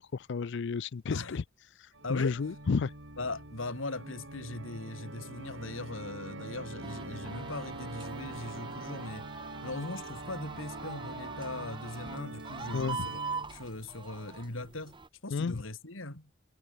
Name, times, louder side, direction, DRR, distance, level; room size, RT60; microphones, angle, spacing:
voice 1, 0.0-1.4 1.8-2.9 12.7-13.0 15.3-15.5, left 5 dB, 60° left, 0.5 m, -32 dB
voice 2, 1.1-1.4 2.0-2.4 3.2-9.3 9.6-13.2 13.5-15.0 15.2-16.3, left 2 dB, 90° left, 3.6 m, -40 dB
Organ, 1.9-13.8, right 2 dB, 65° right, 6.2 m, -44 dB
sound 1, 6.8-15.1, right 4 dB, 25° right, 1.9 m, -43 dB
head